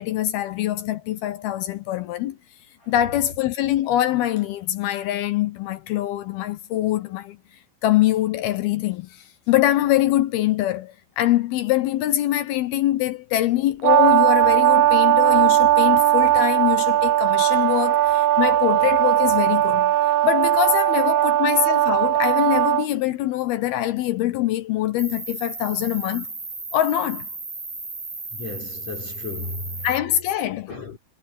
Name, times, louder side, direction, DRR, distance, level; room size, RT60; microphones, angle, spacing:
voice 1, 0.0-2.4 2.9-7.4 7.8-19.9 20.2-26.3 26.7-27.3 29.8-30.7, left 13 dB, 75° left, 2.5 m, -23 dB
Brass instrument, 13.8-22.9, right 14 dB, 80° right, 2.0 m, -18 dB
voice 2, 21.2-21.5 28.3-29.9 30.7-31.0, left 4 dB, 40° left, 4.7 m, -35 dB
Cricket, 25.0-30.0, right 3 dB, 15° right, 2.5 m, -35 dB
omnidirectional pair, 5.0 m